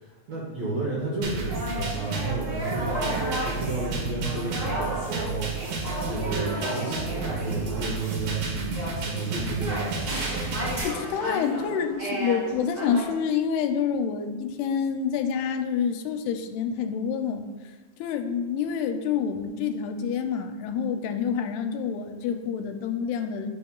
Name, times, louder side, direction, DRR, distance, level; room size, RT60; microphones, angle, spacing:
voice 1, 0.0-3.1 3.4-5.5 5.8-10.2, right 3 dB, 75° right, -5 dB, 1.6 m, -32 dB
sound 1, 1.2-10.8, right 3 dB, 90° right, 3.5 m, -32 dB
sound 2, 1.5-13.1, right 1 dB, 40° right, 1.3 m, -33 dB
voice 2, 10.8-17.5 18.0-23.5, left 7 dB, 85° left, 6 dB, 2.5 m, -27 dB
11.5 x 5.6 x 2.3 m, 1.3 s
omnidirectional pair, 4.5 m